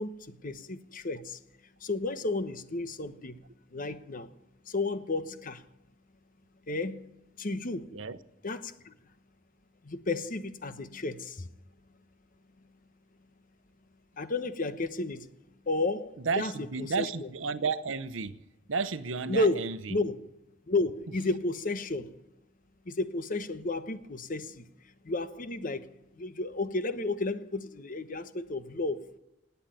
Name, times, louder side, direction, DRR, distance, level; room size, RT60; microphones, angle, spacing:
voice 1, 0.0-1.4 1.8-3.4 3.7-4.3 4.7-5.6 6.7-7.0 7.4-7.9 8.4-8.9 9.8-11.5 14.2-15.3 15.7-16.5 16.8-17.3 19.3-19.6 19.9-20.2 20.7-22.1 22.9-24.6 25.0-25.9 26.2-29.0, left 2 dB, 45° left, 1.0 m, -32 dB
voice 2, 16.2-18.4 18.7-20.0, right 5 dB, 80° right, 0.9 m, -32 dB
18.5 x 8.1 x 9.1 m
head